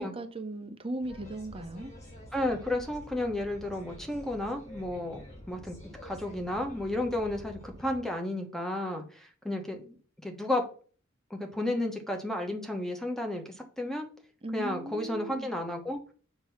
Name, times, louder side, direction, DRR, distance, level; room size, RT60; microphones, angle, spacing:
voice 1, 0.0-1.9 14.4-15.5, right 2 dB, 25° right, 0.6 m, -37 dB
sound 1, 1.0-8.0, equal, 35° left, 2.3 m, -48 dB
voice 2, 2.3-5.8 6.0-10.0 10.2-10.7 11.3-14.1 14.5-16.0, left 1 dB, ahead, 1.0 m, -32 dB
7.3 x 2.9 x 5.7 m
head